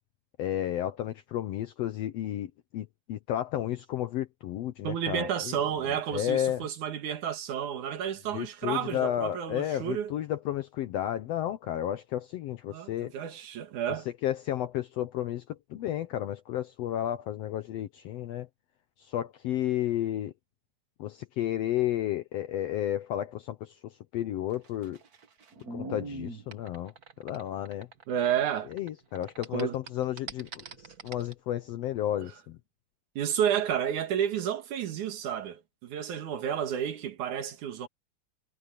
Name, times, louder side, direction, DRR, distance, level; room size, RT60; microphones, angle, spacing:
voice 1, 0.4-5.6 6.1-6.7 8.3-13.1 14.2-18.5 19.1-20.3 21.0-25.0 25.7-26.9 27.2-27.9 28.7-30.6 31.0-32.6, left 12 dB, 75° left, 1.5 m, -32 dB
voice 2, 4.8-10.1 12.7-14.1 28.1-28.7 29.5-29.8 32.2-32.3 33.2-37.9, right 9 dB, 70° right, 3.0 m, -31 dB
sound 1, 24.5-28.9 29.1-31.3, right 2 dB, 40° right, 1.3 m, -42 dB
omnidirectional pair, 3.6 m